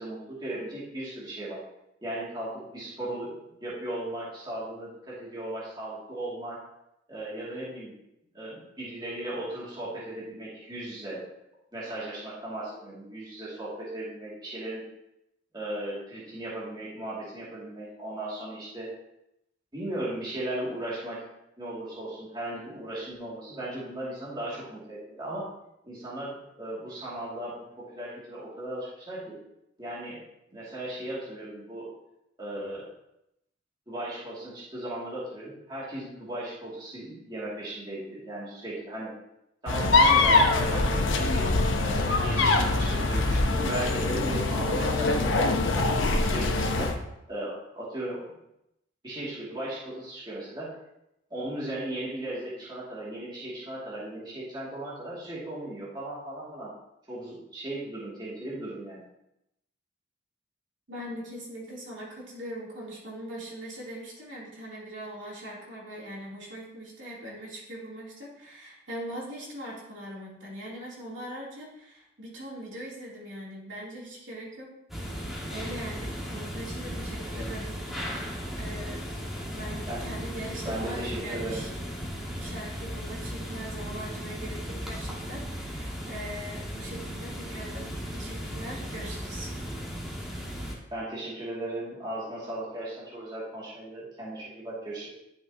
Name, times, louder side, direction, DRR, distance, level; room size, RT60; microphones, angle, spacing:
voice 1, 0.0-1.6 2.0-6.6 7.1-7.9 8.3-11.2 11.7-14.8 15.5-18.9 19.7-21.2 21.6-25.5 25.8-29.4 29.8-30.2 30.5-31.9 32.4-32.9 33.9-39.1 39.6-41.5 41.8-46.9 47.3-48.4 49.0-50.7 51.3-56.7 57.1-59.0 79.9-80.0 80.6-81.6 90.9-95.1, right 1 dB, 20° right, -8 dB, 2.5 m, -36 dB
sound 1, 39.7-47.0, left 3 dB, 75° left, 1.0 m, -23 dB
voice 2, 60.9-74.7 75.1-77.8 78.6-79.0 79.5-81.7 82.4-89.5, right 1 dB, 65° right, -5 dB, 3.3 m, -41 dB
sound 2, 74.9-90.7, equal, ahead, 1.7 m, -36 dB
11.5 x 6.7 x 2.9 m, 0.85 s
head